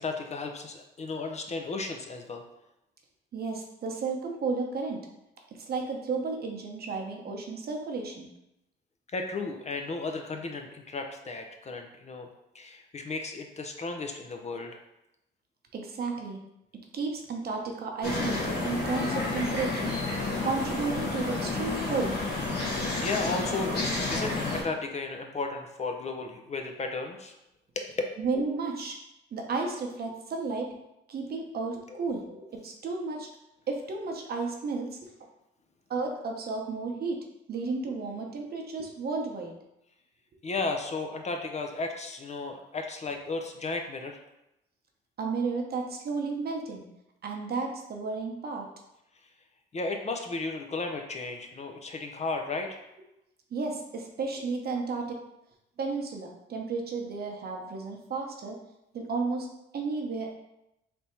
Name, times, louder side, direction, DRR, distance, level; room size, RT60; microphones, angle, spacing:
voice 1, 0.0-2.4 9.1-12.3 12.5-14.8 23.0-27.3 27.8-27.9 31.9-32.0 40.4-44.2 49.7-52.8, left 3 dB, 35° left, 4 dB, 0.5 m, -34 dB
voice 2, 3.3-5.0 5.7-8.3 15.7-16.4 16.9-19.9 20.4-22.1 28.2-29.0 29.3-30.7 31.1-33.3 33.7-34.9 35.9-37.2 37.5-39.5 45.2-46.8 47.2-48.7 53.5-55.2 55.8-58.6 58.9-59.5 59.7-60.3, right 4 dB, 50° right, 1 dB, 0.8 m, -32 dB
sound 1, 18.0-24.6, left 3 dB, 55° left, 1.4 m, -30 dB
3.4 x 2.7 x 4.3 m, 0.87 s
cardioid pair, 90°, 20 cm